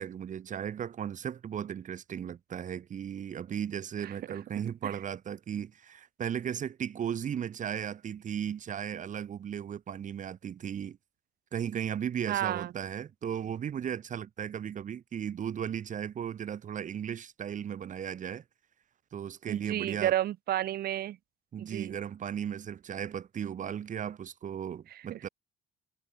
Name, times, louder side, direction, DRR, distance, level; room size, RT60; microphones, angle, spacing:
voice 1, 0.0-11.0 11.5-18.4 19.1-20.1 21.5-25.3, right 8 dB, 50° right, 5.7 m, -36 dB
voice 2, 4.0-4.4 4.8-4.9 12.3-12.7 19.5-21.2 21.6-22.0 24.9-25.2, right 13 dB, 65° right, 4.1 m, -32 dB
cardioid pair, 110°, 17 cm